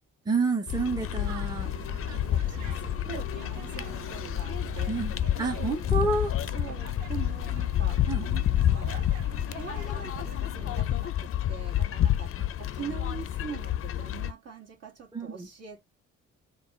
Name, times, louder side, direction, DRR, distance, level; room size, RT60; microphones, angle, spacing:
voice 1, 0.3-1.7 4.9-6.3 8.1-8.2 15.1-15.5, right 4 dB, 15° right, 0.7 m, -29 dB
sound 1, 0.7-14.3, left 12 dB, 50° left, 0.5 m, -29 dB
sound 2, 1.0-11.0, right 10 dB, 70° right, 0.6 m, -44 dB
voice 2, 2.1-4.9 5.6-5.7 6.5-9.0 9.5-12.3 12.6-15.8, right 7 dB, 55° right, 1.9 m, -43 dB
4.0 x 2.4 x 4.3 m
cardioid pair, 90°, 30 cm